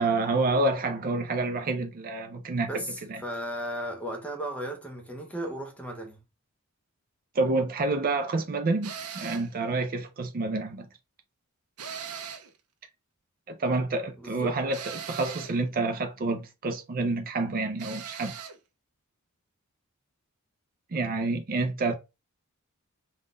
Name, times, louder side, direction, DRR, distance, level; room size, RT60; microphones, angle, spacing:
voice 1, 0.0-2.7 3.1-3.2 7.3-10.9 13.5-18.4 20.9-21.9, right 3 dB, 40° right, 0.5 m, -28 dB
voice 2, 2.6-6.2 14.2-14.6, right 1 dB, 5° left, 0.9 m, -35 dB
sound 1, 8.8-9.5 11.8-12.6 14.7-15.6 17.8-18.6, right 7 dB, 90° right, 0.7 m, -39 dB
3.7 x 2.4 x 3.7 m
head